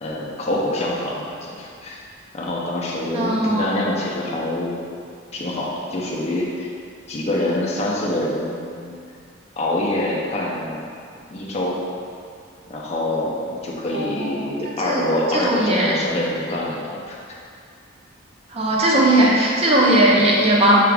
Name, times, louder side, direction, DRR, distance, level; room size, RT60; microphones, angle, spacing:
voice 1, 0.0-2.0 2.3-4.8 5.3-6.7 7.1-8.9 9.6-10.9 11.3-11.8 12.7-17.4, left 1 dB, 30° left, -4 dB, 0.5 m, -25 dB
voice 2, 3.1-3.7 13.9-14.4 14.8-15.0 15.3-15.9 18.5-20.8, right 1 dB, 30° right, -4 dB, 0.5 m, -18 dB
4.7 x 2.4 x 3.3 m, 2.3 s
head